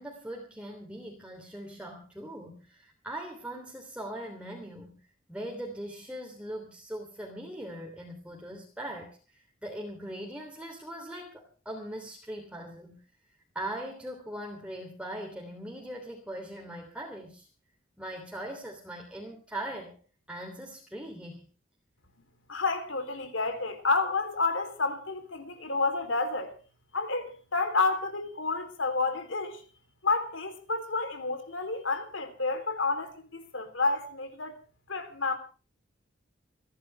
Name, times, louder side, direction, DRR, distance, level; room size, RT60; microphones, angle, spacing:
voice 1, 0.0-5.0 5.3-13.0 13.5-17.5 18.0-20.0 20.3-21.5, right 1 dB, 5° right, 3.2 m, -40 dB
voice 2, 22.2-26.6 26.9-29.6 30.0-34.6 34.9-35.4, left 3 dB, 70° left, 3.5 m, -30 dB
28.5 x 11.5 x 3.4 m
head